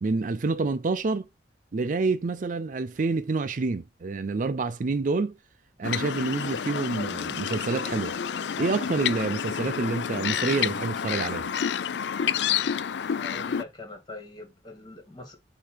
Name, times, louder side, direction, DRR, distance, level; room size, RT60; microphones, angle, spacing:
voice 1, 0.0-1.3 1.7-5.3 5.8-8.2 8.6-11.5, right 3 dB, 50° right, 0.4 m, -28 dB
sound 1, 5.8-13.6, left 8 dB, 75° left, 0.4 m, -29 dB
voice 2, 13.2-15.4, left 2 dB, 25° left, 2.4 m, -42 dB
6.8 x 2.8 x 4.9 m
head